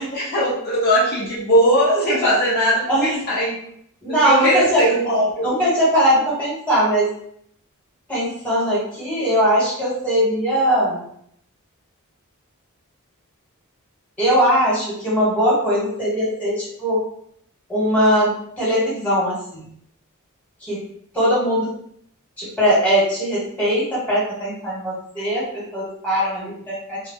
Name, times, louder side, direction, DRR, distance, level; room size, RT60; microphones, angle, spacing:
voice 1, 0.0-3.6 4.1-5.5, equal, 45° left, -7 dB, 0.7 m, -19 dB
voice 2, 4.0-4.8 5.4-7.1 8.1-11.0 14.2-17.0 17.7-19.6 20.6-20.8 21.1-21.7 22.4-27.0, equal, 5° left, -8 dB, 1.1 m, -20 dB
2.2 x 2.0 x 3.5 m, 0.69 s
head